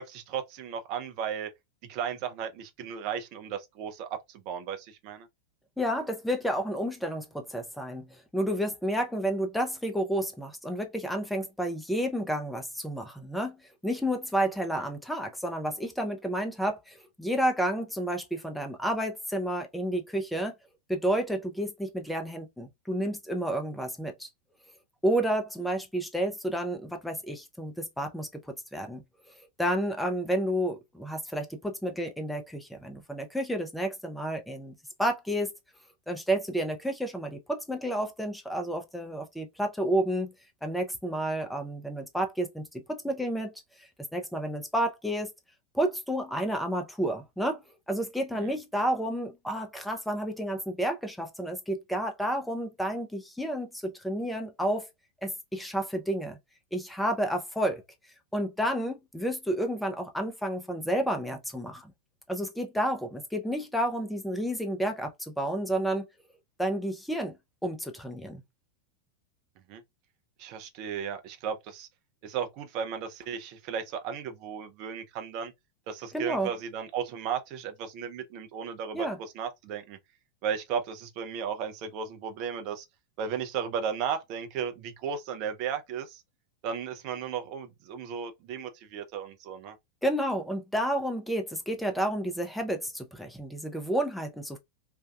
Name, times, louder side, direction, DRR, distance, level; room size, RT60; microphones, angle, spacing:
voice 1, 0.0-1.5 1.8-5.3 14.8-14.9 48.3-48.5 69.7-69.8 70.4-71.9 72.2-75.5 75.9-80.0 80.4-82.9 83.2-86.2 86.6-89.8, right 7 dB, 40° right, 0.5 m, -35 dB
voice 2, 5.8-13.6 13.8-20.5 20.9-24.3 25.0-28.4 28.7-29.0 29.6-35.5 36.1-40.3 40.6-43.5 44.1-45.3 45.7-47.6 47.9-54.9 55.2-56.4 56.7-57.8 58.3-61.9 62.3-66.1 66.6-67.4 67.6-68.4 76.1-76.5 78.9-79.2 90.0-94.6, right 1 dB, ahead, 0.6 m, -30 dB
2.6 x 2.2 x 2.2 m
figure-of-eight pair, 90°, 0 cm